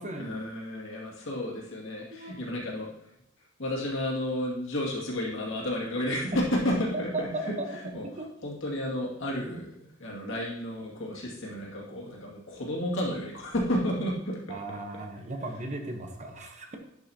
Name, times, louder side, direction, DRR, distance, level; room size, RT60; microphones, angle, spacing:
voice 1, 0.2-2.9 3.6-7.3 7.9-8.0 8.4-9.7 10.0-14.4, left 1 dB, 65° left, -3 dB, 2.3 m, -31 dB
voice 2, 6.9-7.7 8.0-8.3 9.3-9.4 10.2-10.4 14.5-16.8, right 2 dB, 35° right, 3 dB, 1.0 m, -36 dB
10.5 x 5.6 x 2.9 m, 0.81 s
head